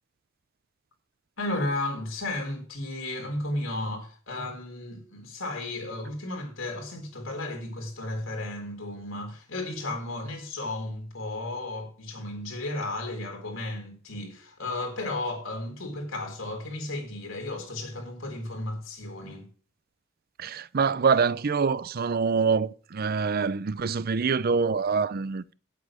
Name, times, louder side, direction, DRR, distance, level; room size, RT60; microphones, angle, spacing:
voice 1, 1.4-19.5, left 2 dB, 75° left, 4.0 m, -34 dB
voice 2, 20.4-25.5, right 5 dB, 50° right, 0.5 m, -25 dB
9.6 x 8.4 x 6.2 m
head